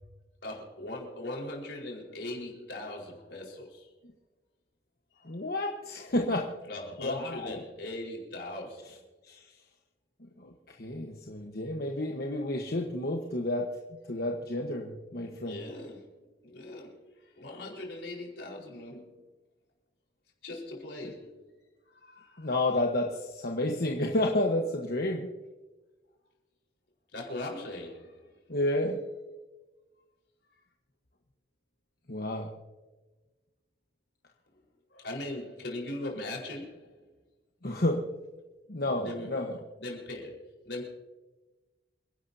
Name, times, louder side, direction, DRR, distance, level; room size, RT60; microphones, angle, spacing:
voice 1, 0.4-3.9 5.1-5.4 6.6-9.0 15.2-16.1 16.4-17.0 17.4-19.2 20.4-21.4 21.9-22.5 24.0-24.1 27.1-28.3 34.9-37.0 38.8-40.9, left 1 dB, 70° left, -1 dB, 4.6 m, -40 dB
voice 2, 5.2-6.5 7.0-7.6 9.2-9.5 10.4-13.7 14.1-15.6 22.4-25.3 28.5-29.0 32.1-32.5 37.6-38.1 38.7-39.6, left 1 dB, 55° left, 1 dB, 1.3 m, -30 dB
28.5 x 11.5 x 2.8 m, 1.2 s
head